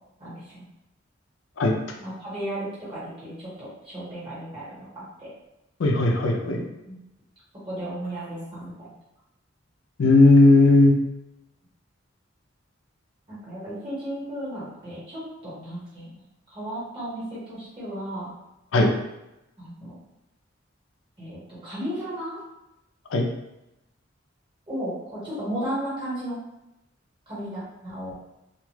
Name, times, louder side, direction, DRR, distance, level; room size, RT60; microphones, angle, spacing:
voice 1, 0.2-0.6 2.0-5.3 6.8-7.0 7.7-8.9 13.3-16.1 16.5-18.3 19.6-19.9 21.2-22.4 24.7-26.4 27.3-28.1, right 1 dB, 25° right, -9 dB, 1.4 m, -34 dB
voice 2, 5.8-6.6 10.0-11.0 18.7-18.9 23.1-23.3, left 2 dB, 85° left, 1 dB, 0.4 m, -16 dB
2.5 x 2.3 x 3.1 m, 0.92 s
head